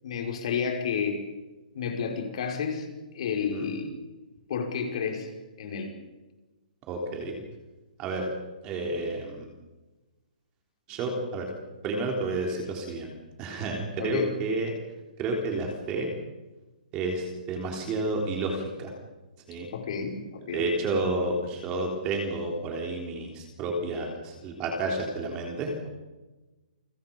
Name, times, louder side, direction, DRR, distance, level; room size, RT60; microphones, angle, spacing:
voice 1, 0.0-1.3 1.7-2.9 3.1-4.0 4.5-5.3 5.6-5.9 14.0-14.4 19.7-20.6, left 6 dB, 40° left, 2 dB, 5.2 m, -31 dB
voice 2, 6.9-7.4 8.0-8.3 8.6-9.5 10.9-11.5 11.8-13.1 13.4-14.7 15.2-16.1 16.9-18.9 19.5-19.7 20.5-25.9, right 2 dB, 15° right, 1 dB, 3.5 m, -30 dB
29.5 x 24.0 x 5.4 m, 1.1 s
hypercardioid pair, 175°, 5 cm